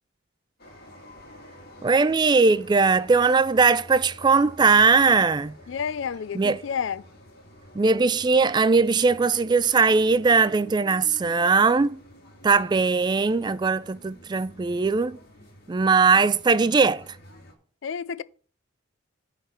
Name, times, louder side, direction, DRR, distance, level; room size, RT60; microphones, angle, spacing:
sound 1, 0.6-17.5, left 1 dB, 50° left, 2.1 m, -49 dB
voice 1, 1.8-5.5 6.4-6.6 7.8-12.0 12.4-15.2 15.7-17.0, right 4 dB, 20° right, 0.3 m, -20 dB
voice 2, 5.7-7.1 17.8-18.2, left 7 dB, 70° left, 0.4 m, -30 dB
9.6 x 3.8 x 6.6 m
head